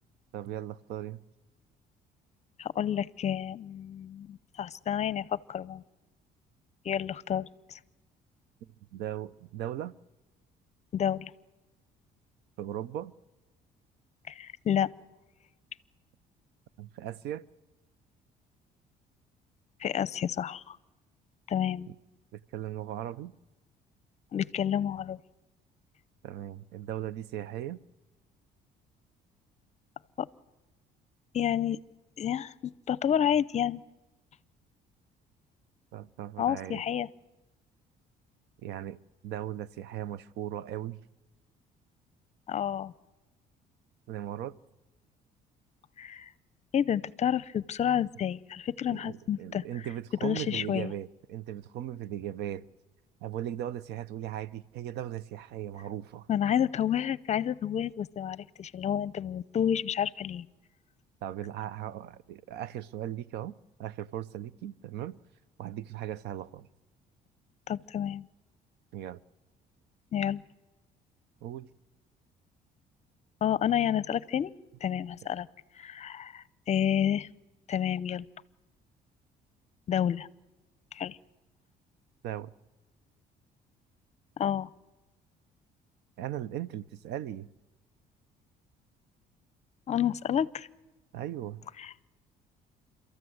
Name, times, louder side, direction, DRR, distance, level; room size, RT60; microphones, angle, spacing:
voice 1, 0.3-1.2 8.9-9.9 12.6-13.1 16.8-17.4 21.9-22.0 22.3-23.3 26.2-27.8 35.9-36.8 38.6-41.0 44.1-44.5 48.9-52.6 53.2-56.3 61.2-65.2 65.6-66.7 68.9-69.2 71.4-71.7 82.2-82.5 86.2-87.5 91.1-91.6, right 12 dB, 80° right, 0.7 m, -38 dB
voice 2, 2.6-5.8 6.8-7.8 10.9-11.3 14.3-14.9 19.8-20.8 21.5-21.9 24.3-25.2 30.2-30.3 31.3-31.8 32.2-33.8 36.4-37.1 42.5-42.9 46.0-46.3 46.7-49.6 50.2-50.9 56.3-60.5 67.7-68.3 70.1-70.4 73.4-74.5 74.8-75.5 75.8-77.3 77.7-78.3 79.9-80.3 80.9-81.2 84.4-84.7 89.9-90.7 91.8-91.9, left 9 dB, 40° left, 0.7 m, -30 dB
29.5 x 14.0 x 8.0 m
cardioid pair, 110°, 17 cm